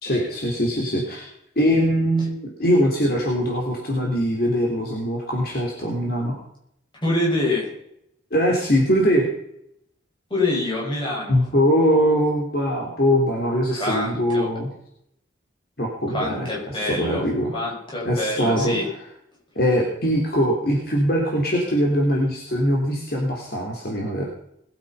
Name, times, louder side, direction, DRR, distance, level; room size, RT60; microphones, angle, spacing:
voice 1, 0.0-1.2 1.5-6.3 8.3-9.3 11.3-14.7 15.8-17.5 18.0-18.8 19.5-24.2, equal, 50° left, -1 dB, 3.3 m, -22 dB
voice 2, 7.0-7.7 10.3-11.4 13.7-14.5 16.1-18.9, left 2 dB, 25° left, -4 dB, 6.4 m, -26 dB
20.5 x 8.8 x 5.6 m, 0.75 s
head